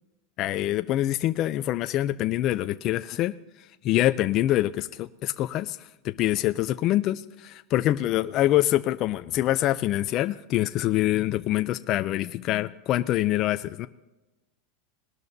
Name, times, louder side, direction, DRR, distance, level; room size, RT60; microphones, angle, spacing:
voice 1, 0.4-3.3 3.8-5.8 6.0-13.9, left 14 dB, 35° left, 10 dB, 0.4 m, -25 dB
20.0 x 12.5 x 2.7 m, 1.1 s
supercardioid pair, 155°, 0 cm